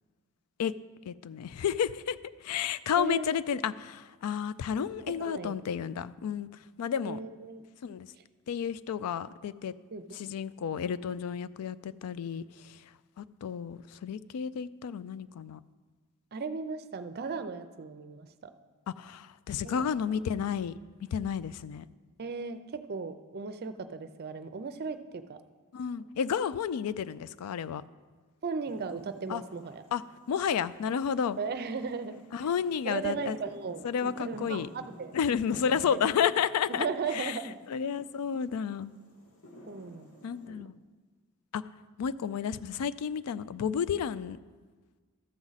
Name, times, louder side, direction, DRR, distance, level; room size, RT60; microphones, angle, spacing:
voice 1, 1.1-6.5 6.8-7.2 7.8-8.1 8.5-9.7 10.1-12.8 13.2-15.6 19.0-20.7 21.1-21.8 25.7-27.8 29.3-29.4 29.9-30.0 30.3-31.4 32.3-33.4 33.8-34.7 35.1-36.9 37.1-37.4 37.7-38.9 40.2-40.7 41.5-41.6 42.0-44.4, left 7 dB, 85° left, 17 dB, 0.3 m, -31 dB
voice 2, 5.1-5.6 7.0-7.7 9.9-10.3 16.3-18.5 19.6-19.8 22.2-25.4 28.4-29.8 31.4-32.2 32.9-35.1 35.9-36.0 36.7-37.5 39.7-40.1 40.5-40.6, right 5 dB, 45° right, 10 dB, 0.5 m, -36 dB
sound 1, 28.7-40.5, equal, 65° left, 1.4 m, -52 dB
13.0 x 7.3 x 4.0 m, 1.4 s
head